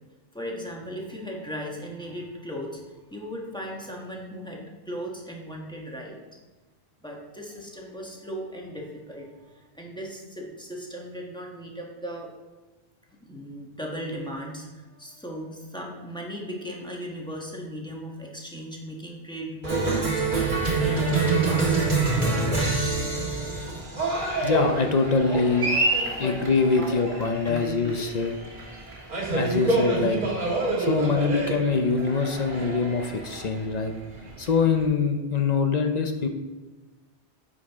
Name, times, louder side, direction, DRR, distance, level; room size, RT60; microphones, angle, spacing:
voice 1, 0.3-6.2 7.0-12.3 13.2-20.3 20.8-22.7 23.1-24.5 25.3-26.4 26.8-28.0, equal, 5° left, -2 dB, 1.2 m, -37 dB
Cheering, 19.6-34.8, right 3 dB, 50° right, 1.6 m, -27 dB
voice 2, 24.4-25.7 26.2-28.3 29.3-30.2 30.8-33.9 34.4-36.3, left 4 dB, 50° left, 5 dB, 0.6 m, -24 dB
9.5 x 5.1 x 3.6 m, 1.2 s
omnidirectional pair, 1.1 m